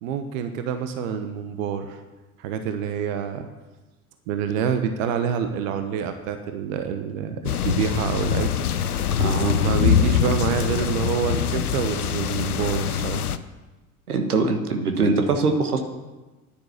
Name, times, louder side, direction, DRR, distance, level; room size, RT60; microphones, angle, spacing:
voice 1, 0.0-2.0 2.4-3.5 4.3-8.5 9.5-13.2, right 7 dB, 60° right, 8 dB, 1.2 m, -27 dB
sound 1, 7.4-13.4, left 8 dB, 85° left, 0.6 m, -23 dB
voice 2, 9.2-9.6 14.1-15.8, right 3 dB, 80° right, 5 dB, 1.4 m, -22 dB
10.0 x 10.0 x 6.7 m, 1.2 s
figure-of-eight pair, 65°, 44 cm